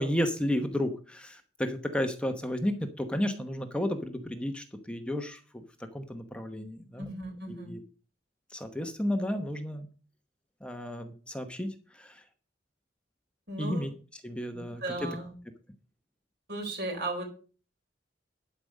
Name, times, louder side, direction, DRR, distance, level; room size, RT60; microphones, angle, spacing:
voice 1, 0.0-5.6 5.9-7.1 7.5-7.8 8.5-9.9 10.6-12.2 13.6-13.9 14.2-14.8, equal, 5° left, 6 dB, 0.9 m, -32 dB
voice 2, 7.0-7.8 13.5-13.9 14.5-15.4 16.5-17.2, right 2 dB, 55° right, 3 dB, 3.8 m, -36 dB
11.5 x 5.2 x 6.4 m, 0.39 s
head